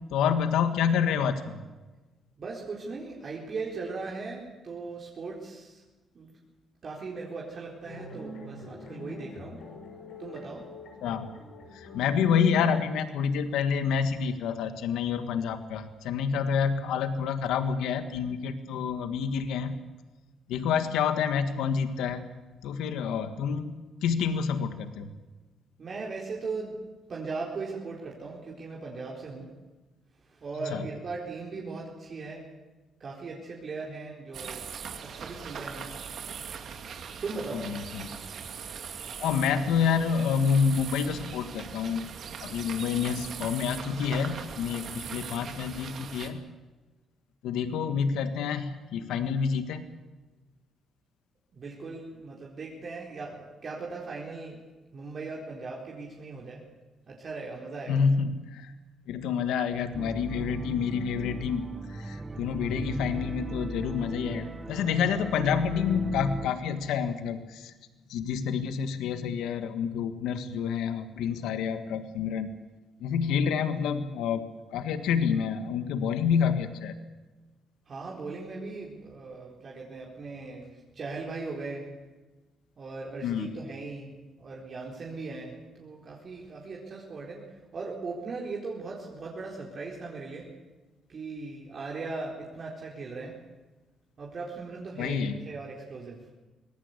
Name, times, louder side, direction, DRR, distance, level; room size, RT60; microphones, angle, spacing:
voice 1, 0.1-1.6 11.0-11.3 11.7-19.7 20.5-22.3 22.6-25.1 30.7-30.8 37.5-38.1 39.2-42.0 42.4-46.4 47.4-49.8 57.9-58.7 59.1-67.7 68.1-72.5 73.0-74.5 74.7-76.9 83.2-83.5 95.0-95.4, left 7 dB, 90° left, 9 dB, 1.6 m, -28 dB
voice 2, 2.4-5.8 6.1-6.3 6.8-9.6 10.2-10.6 25.8-26.8 27.1-29.5 30.3-32.5 33.0-34.7 35.0-36.0 37.2-37.7 51.5-54.6 54.9-56.6 57.1-58.0 64.8-65.1 77.9-81.9 82.8-90.5 91.1-93.4 94.2-96.2, right 3 dB, 45° right, -3 dB, 4.2 m, -38 dB
sound 1, 7.8-12.9, left 1 dB, 70° left, 6.7 m, -44 dB
sound 2, 34.3-46.3, right 7 dB, 60° right, 2.6 m, -40 dB
sound 3, 59.9-66.5, right 2 dB, 20° right, 1.5 m, -38 dB
24.0 x 18.5 x 8.3 m, 1.2 s
cardioid pair, 90°, 0 cm